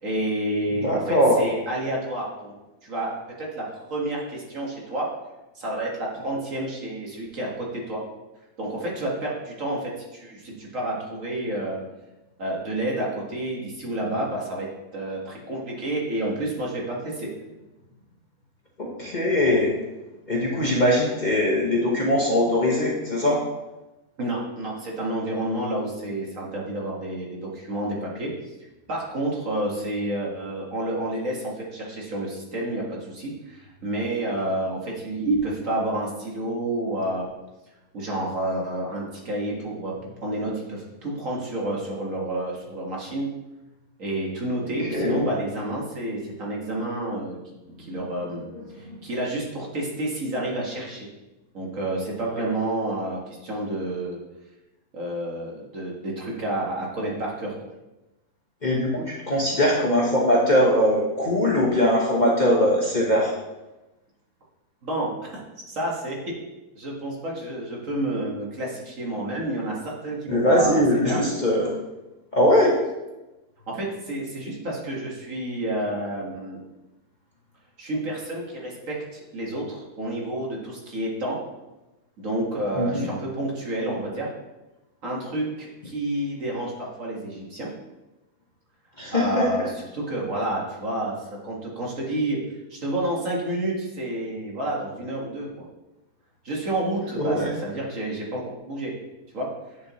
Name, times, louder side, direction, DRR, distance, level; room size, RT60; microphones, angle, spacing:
voice 1, 0.0-2.5 2.8-5.1 5.6-8.0 8.6-11.8 12.4-14.7 14.9-17.3 24.2-28.3 28.9-37.3 37.9-43.3 44.0-47.4 47.8-48.5 48.8-51.1 51.5-54.2 54.9-57.5 64.8-65.4 65.7-66.2 66.8-71.2 73.7-76.6 77.8-81.4 82.2-84.3 85.0-87.7 89.1-89.7 89.9-92.4 92.7-95.7 96.4-98.9 99.3-99.5, right 1 dB, 55° right, -3 dB, 2.0 m, -29 dB
voice 2, 0.8-1.4 18.8-19.7 20.3-23.4 44.8-45.3 58.6-63.3 70.3-71.7 72.3-72.7 82.8-83.1 89.0-89.7 97.2-97.5, left 1 dB, 30° left, -3 dB, 1.1 m, -21 dB
9.2 x 6.6 x 3.1 m, 1.0 s
omnidirectional pair, 1.7 m